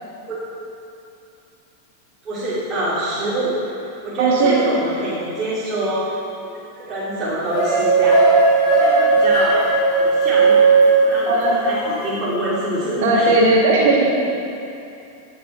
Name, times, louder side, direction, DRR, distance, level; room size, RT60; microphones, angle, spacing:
voice 1, 2.2-6.1 6.4-6.5 6.7-8.2 8.6-9.6 10.0-10.6 11.0-13.3, right 1 dB, 20° right, -11 dB, 3.0 m, -25 dB
voice 2, 4.2-4.6 11.3-11.6 13.0-14.1, right 2 dB, 50° right, -3 dB, 1.9 m, -16 dB
sound 1, 7.5-12.0, right 4 dB, 40° left, 3.0 m, -16 dB
16.5 x 7.0 x 4.4 m, 2.7 s
figure-of-eight pair, 90°, 0 cm